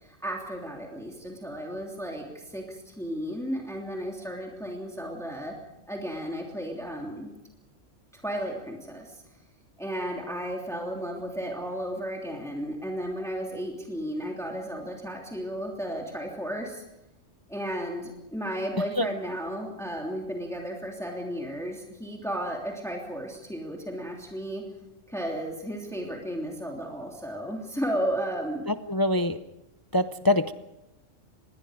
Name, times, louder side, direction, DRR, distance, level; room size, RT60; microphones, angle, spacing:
voice 1, 0.0-5.5 5.9-7.3 8.1-9.2 9.8-16.8 17.5-24.6 25.1-28.6, equal, ahead, -1 dB, 3.1 m, -34 dB
voice 2, 28.7-29.4 29.9-30.5, left 1 dB, 25° left, 10 dB, 0.5 m, -24 dB
27.0 x 21.5 x 5.1 m, 0.93 s
omnidirectional pair, 1.3 m